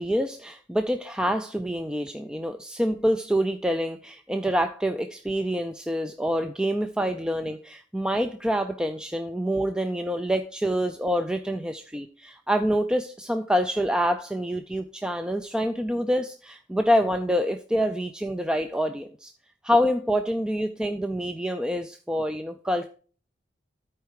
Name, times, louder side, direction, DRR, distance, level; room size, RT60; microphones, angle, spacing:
voice 1, 0.0-19.3 19.6-22.9, equal, 5° right, 7 dB, 0.3 m, -26 dB
12.5 x 4.6 x 4.7 m, 0.41 s
head